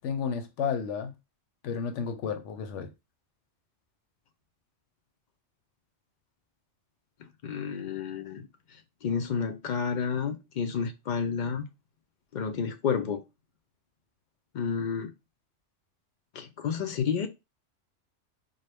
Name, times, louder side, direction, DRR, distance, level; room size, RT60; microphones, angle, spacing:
voice 1, 0.0-1.1 1.6-2.9, left 6 dB, 85° left, 0.9 m, -32 dB
voice 2, 7.4-8.5 9.0-11.7 12.3-13.2 14.5-15.1 16.3-17.3, left 6 dB, 60° left, 0.5 m, -30 dB
3.9 x 2.1 x 3.3 m
omnidirectional pair, 1.2 m